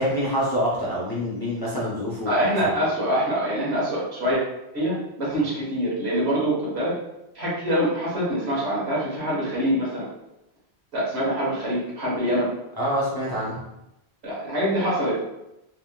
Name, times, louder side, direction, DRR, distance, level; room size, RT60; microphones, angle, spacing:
voice 1, 0.0-2.7 12.8-13.6, equal, 25° left, -7 dB, 0.6 m, -26 dB
voice 2, 2.3-4.4 4.7-6.9 7.3-10.1 10.9-12.5 14.2-15.1, equal, 80° right, -6 dB, 1.5 m, -24 dB
3.3 x 2.8 x 2.3 m, 0.90 s
omnidirectional pair, 1.1 m